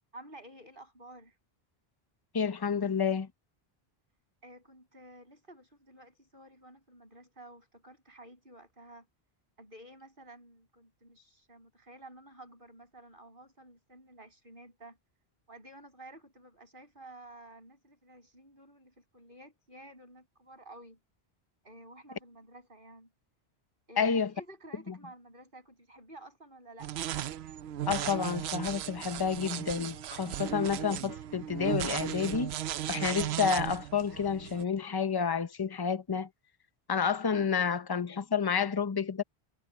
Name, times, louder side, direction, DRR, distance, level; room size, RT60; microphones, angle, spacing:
voice 1, 0.1-1.4 4.4-9.1 9.6-15.0 15.5-21.0 21.6-23.1 23.9-27.1, right 1 dB, 55° right, 7.7 m, -52 dB
voice 2, 2.3-3.3 24.0-24.3 27.9-32.5 32.9-36.3 36.9-39.2, left 6 dB, 25° left, 0.8 m, -30 dB
sound 1, 26.8-34.6, right 11 dB, 80° right, 0.9 m, -36 dB
omnidirectional pair, 1.1 m